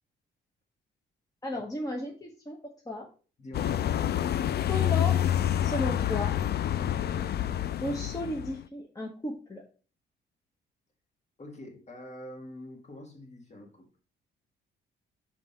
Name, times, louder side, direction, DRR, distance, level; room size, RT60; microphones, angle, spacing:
voice 1, 1.4-3.1 4.7-5.2 5.6-6.3 7.8-9.6, left 1 dB, 20° left, 1.0 m, -34 dB
voice 2, 3.4-3.9 11.4-13.9, left 1 dB, 35° left, 1.8 m, -45 dB
sound 1, 3.5-8.6, left 11 dB, 55° left, 0.5 m, -28 dB
5.5 x 3.7 x 5.2 m
cardioid pair, 90°, 20 cm